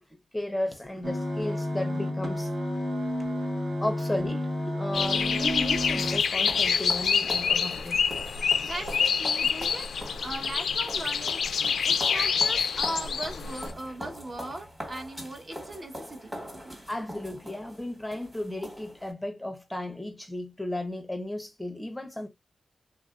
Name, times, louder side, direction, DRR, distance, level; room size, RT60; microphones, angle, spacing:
voice 1, 0.3-2.5 3.8-8.0 16.9-22.3, left 1 dB, 10° left, 0.6 m, -34 dB
sound 1, 1.0-6.2, left 1 dB, 85° right, 1.4 m, -30 dB
sound 2, 4.9-13.7, left 6 dB, 85° left, 0.3 m, -27 dB
sound 3, 5.4-19.1, equal, 10° right, 1.3 m, -42 dB
voice 2, 8.6-9.9 10.2-16.8, right 1 dB, 40° right, 0.9 m, -39 dB
3.5 x 2.5 x 2.3 m
wide cardioid pair, 110°, 0 cm